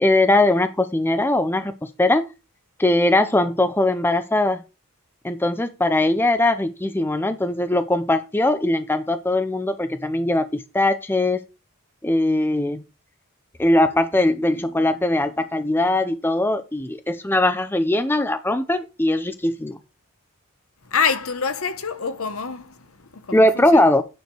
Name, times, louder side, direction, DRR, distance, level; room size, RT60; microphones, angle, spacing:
voice 1, 0.0-1.7 2.0-2.3 2.8-4.6 5.2-10.5 10.7-11.4 12.0-12.8 13.6-19.8 23.3-24.0, left 1 dB, 10° left, 0.6 m, -20 dB
voice 2, 20.8-23.8, left 6 dB, 65° left, 1.0 m, -26 dB
9.5 x 5.0 x 4.6 m
head